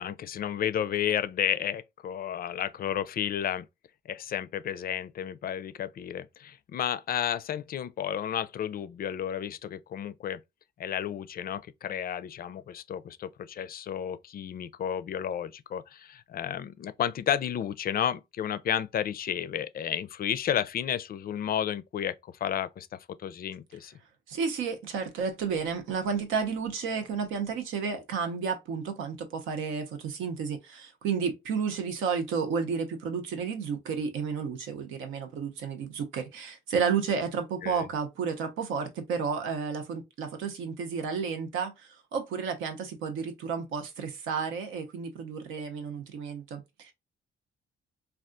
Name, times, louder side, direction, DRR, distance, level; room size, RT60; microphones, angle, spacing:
voice 1, 0.0-3.7 4.1-10.4 10.8-22.1 22.4-22.9 23.2-23.9 37.6-37.9, left 9 dB, 50° left, 0.4 m, -32 dB
voice 2, 24.3-46.9, right 6 dB, 90° right, 0.7 m, -32 dB
3.4 x 2.4 x 2.5 m
cardioid pair, 90°, 20 cm